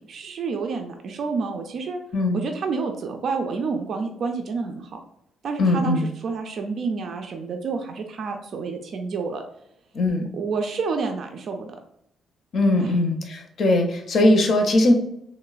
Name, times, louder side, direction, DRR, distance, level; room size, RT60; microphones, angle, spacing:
voice 1, 0.1-2.0 2.3-4.9 5.4-9.4 10.3-11.7 12.8-12.9, right 4 dB, 60° right, 4 dB, 0.4 m, -29 dB
voice 2, 5.6-6.1 9.9-10.3 12.5-14.9, left 1 dB, 55° left, 4 dB, 0.6 m, -20 dB
3.0 x 2.0 x 2.3 m, 0.76 s
cardioid pair, 90°, 0 cm